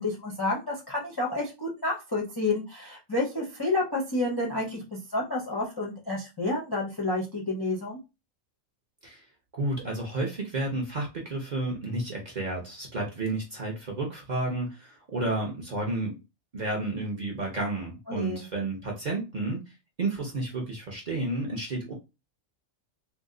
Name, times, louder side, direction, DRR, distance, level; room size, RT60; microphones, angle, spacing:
voice 1, 0.0-8.0 18.1-18.5, left 2 dB, 35° left, -2 dB, 0.4 m, -30 dB
voice 2, 9.5-16.1 16.5-19.6 20.0-21.9, right 2 dB, 45° right, -1 dB, 0.6 m, -31 dB
2.7 x 2.1 x 3.6 m, 0.27 s
omnidirectional pair, 1.4 m